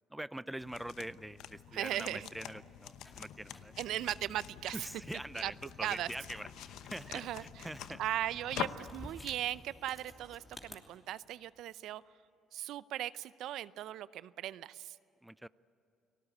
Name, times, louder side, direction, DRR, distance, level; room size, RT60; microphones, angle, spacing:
voice 1, 0.1-3.8 4.7-8.0 15.2-15.5, right 1 dB, 5° right, 17 dB, 0.5 m, -44 dB
sound 1, 0.6-9.0, left 11 dB, 75° left, 0.9 m, -46 dB
voice 2, 1.7-2.3 3.8-4.8 5.4-5.5 5.8-6.1 7.1-7.7 8.0-12.0 12.5-15.0, right 13 dB, 75° right, 17 dB, 0.6 m, -38 dB
sound 2, 3.0-10.8, left 1 dB, 20° left, 3.0 m, -55 dB
30.0 x 19.5 x 8.6 m, 2.9 s
cardioid pair, 90°, 0 cm